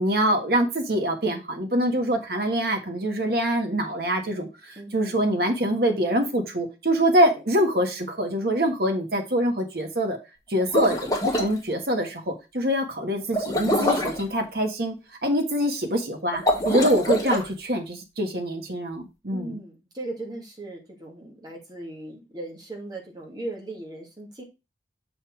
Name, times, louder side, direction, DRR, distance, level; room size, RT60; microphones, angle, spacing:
voice 1, 0.0-10.2 10.5-14.9 15.2-19.6, equal, 55° right, 4 dB, 1.5 m, -24 dB
voice 2, 4.8-5.2 19.3-24.4, right 1 dB, 20° right, -1 dB, 1.9 m, -38 dB
sound 1, 10.6-11.5 13.3-14.2 16.3-17.4, left 1 dB, 20° left, 1.4 m, -24 dB
6.6 x 4.2 x 4.5 m, 0.27 s
head